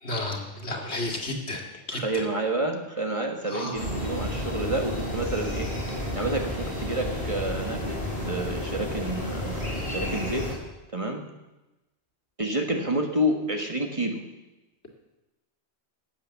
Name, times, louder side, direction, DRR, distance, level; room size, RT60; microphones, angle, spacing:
voice 1, 0.0-1.6 1.9-2.2 3.5-3.8, left 2 dB, 70° left, 1 dB, 2.5 m, -32 dB
voice 2, 1.9-5.7 6.2-8.0 8.3-10.4 10.9-11.2 12.4-14.2, right 1 dB, 30° right, 3 dB, 1.5 m, -29 dB
sound 1, 3.8-10.5, left 1 dB, 35° left, 5.8 m, -31 dB
17.5 x 7.8 x 7.1 m, 1.0 s
omnidirectional pair, 1.2 m